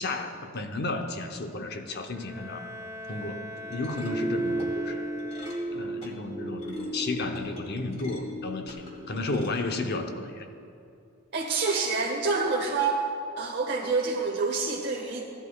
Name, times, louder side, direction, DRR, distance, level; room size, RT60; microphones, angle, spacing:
voice 1, 0.0-2.7 3.1-5.1 5.7-10.5, left 2 dB, 50° left, 5 dB, 0.7 m, -33 dB
Bowed string instrument, 1.9-6.0, left 1 dB, 15° right, 1.1 m, -42 dB
sound 1, 3.6-9.5, right 1 dB, 30° left, 1.6 m, -34 dB
voice 2, 11.3-13.0 13.4-15.2, right 4 dB, 55° right, 0 dB, 0.8 m, -27 dB
15.5 x 11.5 x 2.3 m, 2.6 s
head